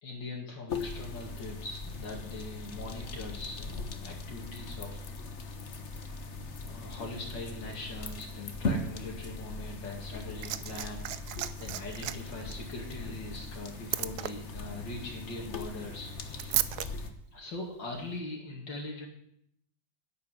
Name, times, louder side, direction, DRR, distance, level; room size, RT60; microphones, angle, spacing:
voice 1, 0.0-5.0 6.7-16.6 17.3-19.1, left 2 dB, 70° left, 0 dB, 2.9 m, -42 dB
sound 1, 0.7-17.1, left 3 dB, 40° left, 1.3 m, -39 dB
Liquid, 10.0-16.9 17.9-18.1, right 13 dB, 65° right, 1.1 m, -37 dB
11.0 x 8.5 x 9.4 m, 0.73 s
omnidirectional pair, 2.1 m